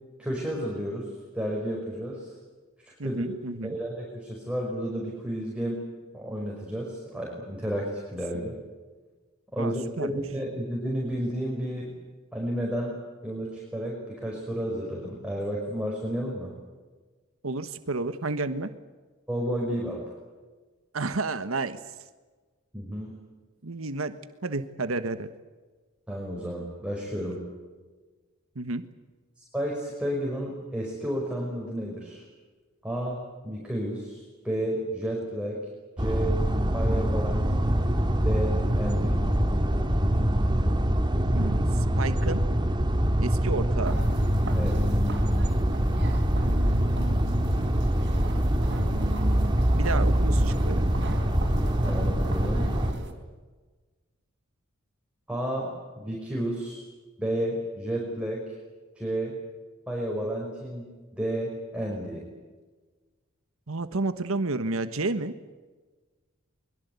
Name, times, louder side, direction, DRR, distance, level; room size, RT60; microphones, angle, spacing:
voice 1, 0.2-2.3 2.9-3.2 3.6-5.8 6.1-8.6 9.5-11.9 12.3-13.0 13.2-16.5 19.3-20.0 22.7-23.2 26.1-27.4 29.4-32.2 32.8-35.6 36.0-36.4 36.7-37.8 38.2-39.2 44.5-44.8 51.8-52.7 55.3-56.8 57.2-58.4 59.0-59.4 59.9-60.8 61.1-62.2, equal, 5° right, -3 dB, 5.5 m, -32 dB
voice 2, 3.0-3.8 9.6-10.2 17.4-18.7 20.9-22.0 23.6-24.1 24.4-25.3 28.5-28.8 41.3-42.4 43.2-44.0 46.3-47.6 48.7-50.8 63.7-65.3, right 3 dB, 85° right, 11 dB, 1.3 m, -31 dB
sound 1, 36.0-52.9, equal, 20° right, 1.9 m, -24 dB
sound 2, 43.8-53.1, right 1 dB, 60° right, 4.1 m, -39 dB
23.5 x 22.0 x 8.3 m, 1.3 s
head